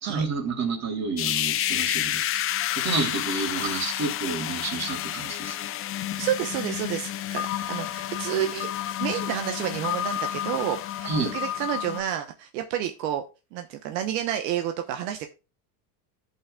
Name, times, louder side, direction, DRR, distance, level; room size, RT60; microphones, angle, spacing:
voice 1, 0.0-2.4 2.8-5.6 11.0-11.3, right 4 dB, 30° right, 2.9 m, -29 dB
sound 1, 1.2-12.0, left 12 dB, 30° left, 0.5 m, -30 dB
voice 2, 6.2-8.7 9.0-13.2 13.5-15.3, right 11 dB, 75° right, 1.1 m, -30 dB
15.5 x 5.6 x 2.3 m
supercardioid pair, 125°, 49 cm